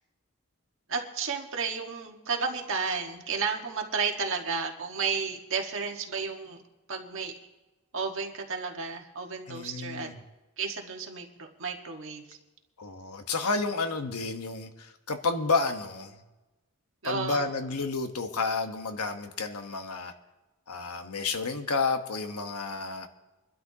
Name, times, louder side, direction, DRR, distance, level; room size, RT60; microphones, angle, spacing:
voice 1, 0.9-6.6 6.9-7.3 7.9-10.1 10.6-12.4 17.0-17.5, right 5 dB, 60° right, 2 dB, 1.6 m, -32 dB
voice 2, 9.5-10.2 12.8-16.2 17.0-20.1 20.7-23.1, left 4 dB, 80° left, 6 dB, 1.2 m, -31 dB
24.5 x 12.0 x 2.9 m, 1.1 s
head